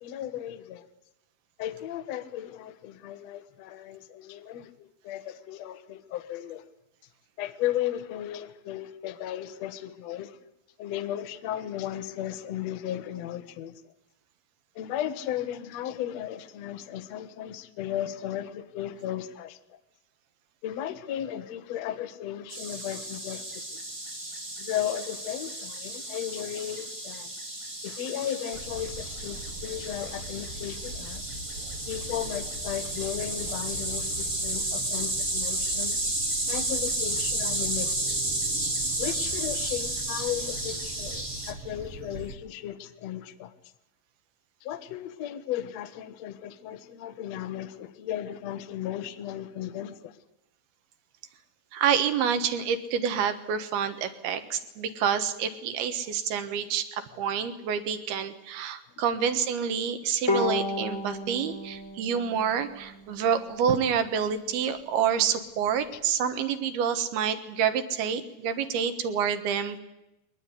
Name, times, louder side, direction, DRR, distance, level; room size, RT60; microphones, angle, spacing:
voice 1, 0.0-0.8 1.6-6.6 7.4-10.4 10.8-13.9 14.7-19.6 20.6-23.8 24.6-27.3 27.8-31.2 31.9-36.0 36.5-38.2 39.0-43.5 44.6-50.2, left 11 dB, 80° left, 1.5 m, -35 dB
sound 1, 22.5-41.5, right 1 dB, 20° right, 0.8 m, -32 dB
sound 2, 28.5-42.4, right 3 dB, 55° right, 1.7 m, -42 dB
voice 2, 51.7-69.8, right 7 dB, 70° right, 3.2 m, -28 dB
Bowed string instrument, 60.3-63.6, left 2 dB, 15° left, 0.9 m, -32 dB
22.0 x 19.5 x 9.7 m
omnidirectional pair, 5.0 m